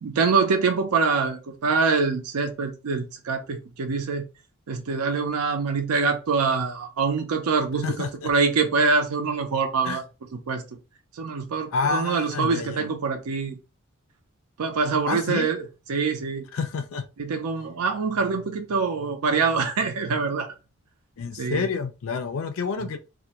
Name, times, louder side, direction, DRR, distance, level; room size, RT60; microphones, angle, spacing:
voice 1, 0.0-4.2 4.7-7.8 8.2-10.0 10.5-10.6 11.2-13.6 14.6-15.6 15.9-16.4 17.2-20.5 21.4-21.7, right 4 dB, 85° right, 0.5 m, -24 dB
voice 2, 7.8-8.3 9.8-10.0 11.7-12.9 15.1-15.5 16.5-17.0 21.2-23.0, left 5 dB, 65° left, 0.4 m, -29 dB
2.4 x 2.1 x 2.8 m
head